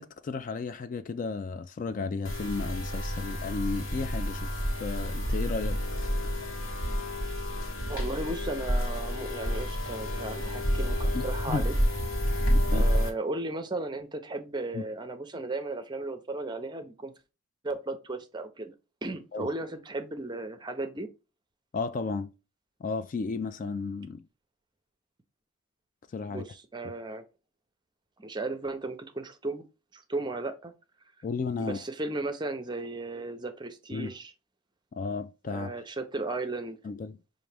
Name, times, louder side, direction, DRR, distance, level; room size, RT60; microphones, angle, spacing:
voice 1, 0.0-4.5 4.8-5.8 11.1-11.6 12.7-12.9 14.7-14.8 19.3-19.5 21.7-22.3 22.8-24.2 26.1-26.4 31.2-31.8 33.9-34.1 34.9-35.7 36.8-37.2, left 4 dB, 40° left, 0.3 m, -33 dB
sound 1, 2.3-13.1, equal, 70° left, 1.4 m, -29 dB
voice 2, 7.9-11.7 12.7-17.1 17.6-18.7 19.0-21.1 26.2-27.2 28.2-29.6 29.9-30.7 31.6-34.3 35.5-36.8, right 2 dB, 20° right, 0.6 m, -35 dB
6.1 x 2.6 x 3.3 m
head